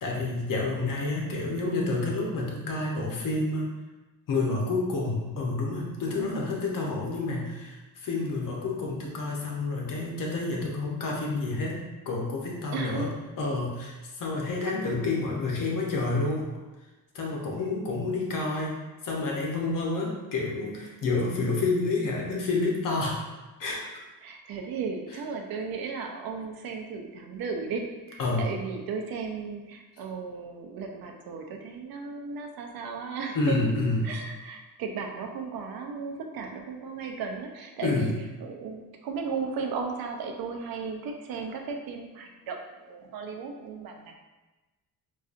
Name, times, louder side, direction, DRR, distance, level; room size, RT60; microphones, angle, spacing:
voice 1, 0.0-3.7 4.3-16.5 17.1-23.2 23.6-23.9 28.2-28.5 33.3-34.2 37.8-38.1, left 3 dB, 65° left, -2 dB, 0.9 m, -29 dB
voice 2, 12.7-13.1 24.2-33.6 34.0-38.1 38.4-44.2, right 5 dB, 75° right, 2 dB, 0.6 m, -35 dB
3.9 x 2.6 x 2.5 m, 1.1 s
cardioid pair, 120°, 35 cm